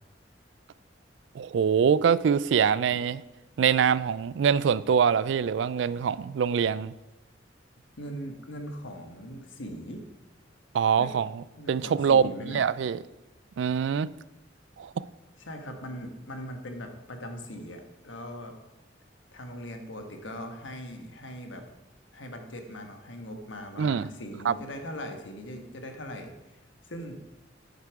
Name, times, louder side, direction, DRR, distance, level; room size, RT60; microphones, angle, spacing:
voice 1, 1.3-3.2 3.6-6.9 10.7-13.0 13.6-14.1 14.8-15.0 23.8-24.1 24.4-24.6, right 7 dB, 70° right, 0.3 m, -24 dB
voice 2, 8.0-10.0 11.0-11.2 11.6-12.6 15.4-18.5 19.3-21.6 22.1-26.6 26.8-27.2, equal, 80° left, 1.3 m, -40 dB
8.4 x 6.6 x 4.7 m
head